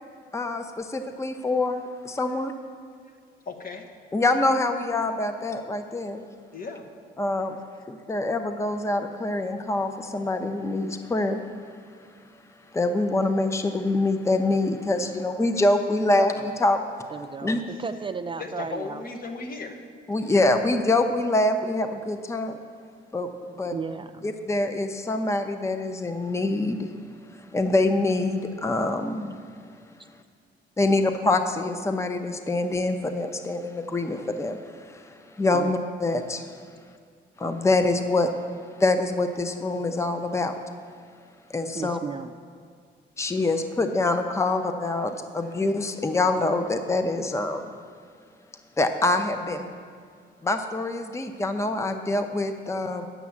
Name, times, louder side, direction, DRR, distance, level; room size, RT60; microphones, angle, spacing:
voice 1, 0.3-2.5 4.1-6.2 7.2-7.6 7.9-11.4 12.7-16.8 17.4-17.6 20.1-22.6 23.1-23.3 23.6-23.8 24.2-26.9 27.5-29.4 30.8-36.5 37.4-38.3 38.8-40.5 41.5-42.0 43.2-47.7 48.8-49.7 50.4-53.1, left 2 dB, 15° left, 7 dB, 0.7 m, -25 dB
voice 2, 3.4-3.8 6.5-6.9 18.4-19.8, left 3 dB, 45° left, 4 dB, 1.2 m, -35 dB
voice 3, 16.1-16.5 17.1-19.0 23.5-24.3 35.5-35.7 41.7-42.3, right 5 dB, 25° right, 8 dB, 0.4 m, -34 dB
9.4 x 7.2 x 7.2 m, 2.1 s
cardioid pair, 90°, 20 cm